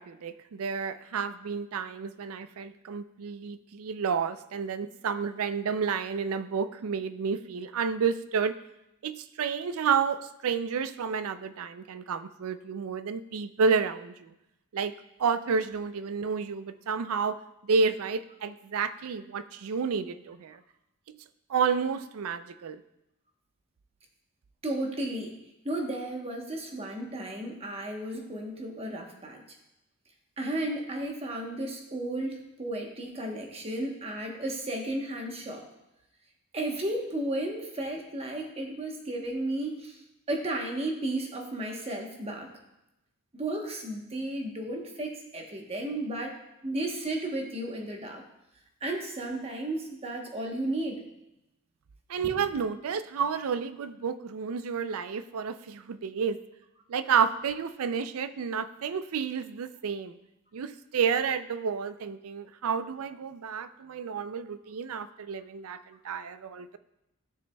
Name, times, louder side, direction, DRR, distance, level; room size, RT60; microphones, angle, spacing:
voice 1, 0.0-8.6 9.0-14.3 14.7-14.9 15.2-20.6 21.1-21.2 21.5-22.8 52.1-56.4 56.9-60.2 60.5-66.8, right 6 dB, 70° right, 13 dB, 0.4 m, -30 dB
voice 2, 24.6-25.4 25.6-29.4 30.4-35.6 36.5-40.0 40.3-42.5 43.3-46.3 46.6-48.2 48.8-51.0, right 1 dB, 25° right, 1 dB, 1.0 m, -33 dB
13.0 x 6.7 x 2.3 m, 0.90 s
head